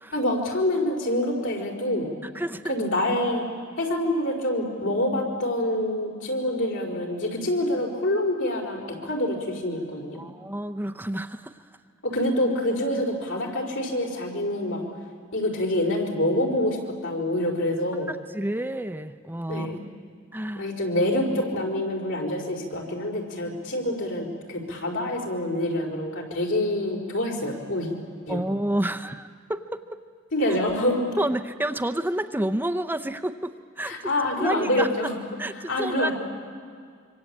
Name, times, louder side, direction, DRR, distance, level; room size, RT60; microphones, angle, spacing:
voice 1, 0.1-2.1 2.6-3.5 3.8-10.2 12.0-14.8 15.3-18.1 19.5-19.8 20.6-27.9 28.3-28.6 30.3-31.1 33.8-35.2 35.7-36.1, left 1 dB, 80° left, 1 dB, 5.2 m, -26 dB
voice 2, 2.3-2.8 10.2-11.5 18.1-19.7 20.3-20.6 28.3-30.0 31.2-34.1 34.4-34.9 35.4-36.1, right 1 dB, 10° right, 9 dB, 0.7 m, -29 dB
25.5 x 25.0 x 8.6 m, 2.1 s
head